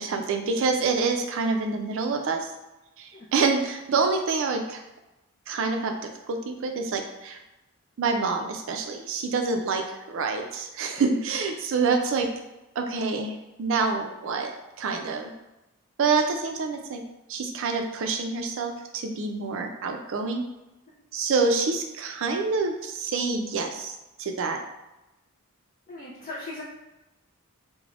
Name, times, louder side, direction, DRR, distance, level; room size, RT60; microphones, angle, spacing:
voice 1, 0.0-2.5 3.0-4.8 5.5-7.4 8.0-12.3 12.8-14.5 14.8-15.3 16.0-17.0 17.3-20.4 21.1-23.9 24.2-24.6, right 4 dB, 60° right, 4 dB, 0.4 m, -27 dB
voice 2, 25.9-26.6, left 2 dB, 40° left, -6 dB, 0.4 m, -38 dB
3.3 x 2.1 x 2.4 m, 0.98 s
head